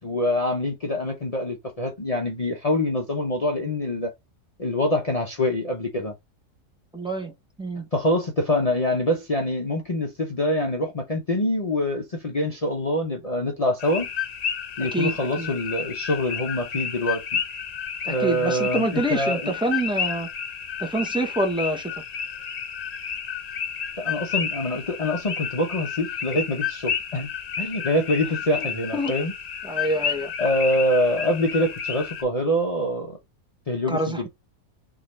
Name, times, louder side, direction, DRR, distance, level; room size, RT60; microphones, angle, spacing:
voice 1, 0.0-4.1 4.6-6.1 7.9-14.1 14.8-17.4 18.1-19.5 24.0-27.3 27.6-29.3 30.4-33.2 33.7-34.3, left 1 dB, 35° left, 0.6 m, -25 dB
voice 2, 6.9-7.3 7.6-7.9 14.9-15.5 18.1-20.3 20.8-21.9 28.6-28.7 28.9-29.1 29.6-30.3 33.9-34.3, right 1 dB, 5° right, 0.5 m, -26 dB
sound 1, 13.8-32.2, left 7 dB, 90° left, 0.3 m, -31 dB
3.7 x 3.1 x 4.1 m
omnidirectional pair, 1.5 m